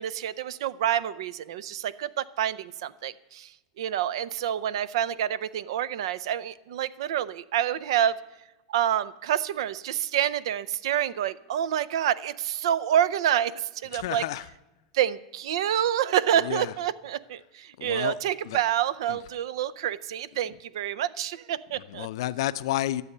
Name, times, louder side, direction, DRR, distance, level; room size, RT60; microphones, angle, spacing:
voice 1, 0.0-3.5 3.8-8.2 8.7-14.2 14.9-22.1, right 10 dB, 75° right, 0.5 m, -27 dB
voice 2, 13.9-14.4 16.4-16.7 17.8-18.2 18.4-18.6 19.1-19.2 21.9-23.0, left 14 dB, 70° left, 0.5 m, -30 dB
12.5 x 7.7 x 6.6 m
supercardioid pair, 135°, 3 cm